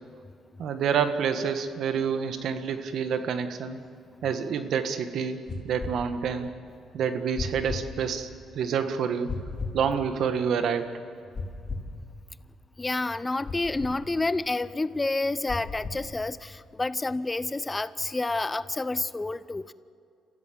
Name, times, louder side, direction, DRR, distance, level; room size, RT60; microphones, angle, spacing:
voice 1, 0.6-3.8 4.2-6.5 6.9-8.3 8.5-9.3 9.7-10.9, right 7 dB, 70° right, 8 dB, 1.6 m, -28 dB
sound 1, 5.5-6.0 7.4-7.8 9.3-9.8 11.3-11.9 13.5-13.9 15.5-16.0, left 3 dB, 45° left, 4.8 m, -34 dB
voice 2, 12.8-19.7, left 2 dB, 20° left, 16 dB, 0.6 m, -29 dB
28.5 x 15.5 x 7.7 m, 2.4 s
cardioid pair, 90°, 0 cm